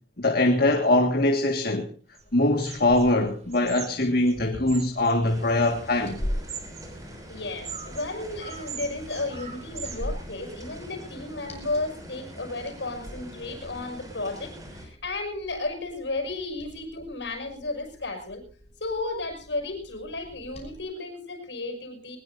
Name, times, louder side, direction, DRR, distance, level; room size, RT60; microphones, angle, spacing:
voice 1, 0.2-1.9 2.3-6.2, left 2 dB, 60° left, 1.9 m, -22 dB
sound 1, 2.1-2.2 2.6-10.0, right 6 dB, 40° right, 2.4 m, -42 dB
Liquid, 2.2-20.8, equal, 35° left, 6.2 m, -43 dB
sound 2, 5.2-14.9, equal, 20° right, 6.3 m, -44 dB
voice 2, 7.3-18.4 18.8-22.2, left 2 dB, 75° left, 6.1 m, -33 dB
21.5 x 20.5 x 2.7 m
head